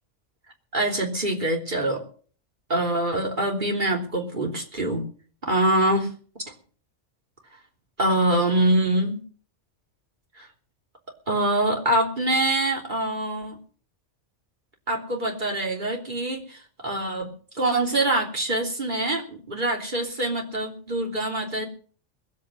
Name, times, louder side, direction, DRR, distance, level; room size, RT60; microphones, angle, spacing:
voice 1, 0.7-2.0 2.7-5.0 5.5-6.1 8.0-9.2 11.3-13.6 14.9-16.6 16.8-17.3 17.6-21.7, right 1 dB, 40° right, 1 dB, 3.5 m, -24 dB
20.5 x 8.5 x 6.4 m, 0.43 s
omnidirectional pair, 1.3 m